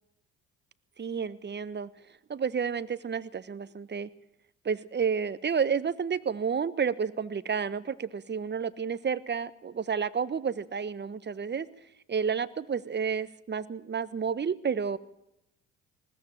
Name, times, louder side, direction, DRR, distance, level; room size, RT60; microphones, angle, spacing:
voice 1, 1.0-1.9 2.3-4.1 4.6-11.7 12.1-15.0, right 6 dB, 30° right, 15 dB, 1.3 m, -30 dB
20.0 x 17.5 x 8.8 m, 0.80 s
hypercardioid pair, 60°, 35 cm